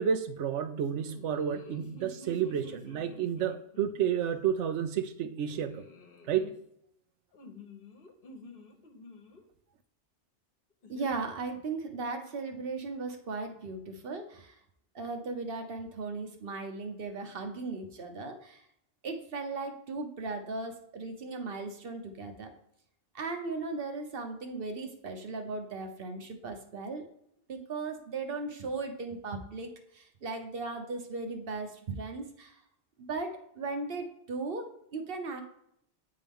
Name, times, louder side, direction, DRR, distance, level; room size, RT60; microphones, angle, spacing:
voice 1, 0.0-5.8 6.3-6.5, right 8 dB, 80° right, 10 dB, 1.0 m, -30 dB
sound 1, 1.0-4.0 5.5-6.5 7.3-9.4 10.8-11.1, left 3 dB, 55° left, 1.1 m, -51 dB
voice 2, 10.9-14.6 14.9-18.7 19.0-22.5 23.1-27.1 27.5-32.6 33.0-35.4, right 3 dB, 55° right, 5 dB, 1.1 m, -37 dB
8.8 x 3.8 x 3.5 m, 0.73 s
omnidirectional pair, 1.2 m